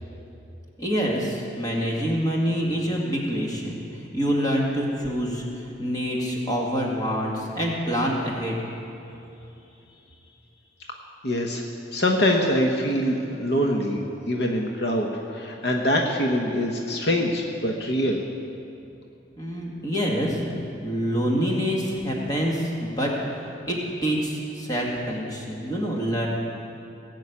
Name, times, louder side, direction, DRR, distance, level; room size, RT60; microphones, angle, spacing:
voice 1, 0.8-5.4 5.8-8.6 19.4-23.1 23.7-26.3, equal, 20° left, -3 dB, 2.0 m, -26 dB
voice 2, 11.2-11.6 11.9-18.2, equal, 60° left, 1 dB, 1.0 m, -24 dB
18.5 x 6.5 x 8.5 m, 2.9 s
head